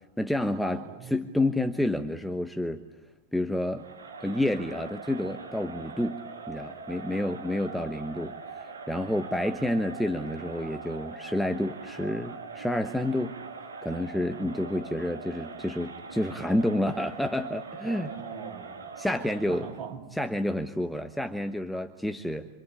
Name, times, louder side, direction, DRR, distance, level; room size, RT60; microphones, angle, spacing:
voice 1, 0.2-2.8 3.3-3.8 4.2-13.4 13.8-18.1 19.0-19.7 20.1-22.5, left 1 dB, ahead, 7 dB, 1.1 m, -29 dB
voice 2, 0.7-1.1 14.4-14.5 17.8-18.9 19.5-20.0, right 7 dB, 40° right, 2 dB, 5.7 m, -41 dB
Crowd, 3.8-19.9, right 4 dB, 75° right, 2.7 m, -42 dB
27.0 x 24.5 x 8.7 m, 0.96 s
figure-of-eight pair, 90°, 0 cm